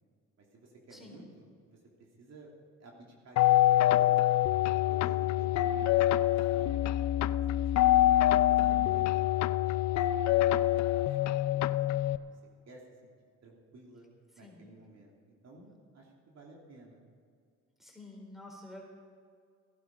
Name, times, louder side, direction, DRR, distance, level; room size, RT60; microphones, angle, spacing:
voice 1, 0.4-1.3 1.7-2.5 2.8-4.1 4.7-7.9 8.2-9.0 9.3-9.8 10.2-10.3 10.7-12.3 12.7-13.1 13.4-14.0 14.4-17.0, right 2 dB, 60° right, -1 dB, 3.0 m, -54 dB
voice 2, 0.9-1.2 8.6-9.1 14.3-14.8 17.8-18.8, left 1 dB, ahead, 0 dB, 4.0 m, -50 dB
sound 1, 3.4-12.2, left 14 dB, 65° left, 0.5 m, -25 dB
16.5 x 11.5 x 5.5 m, 2.2 s
cardioid pair, 90°, 30 cm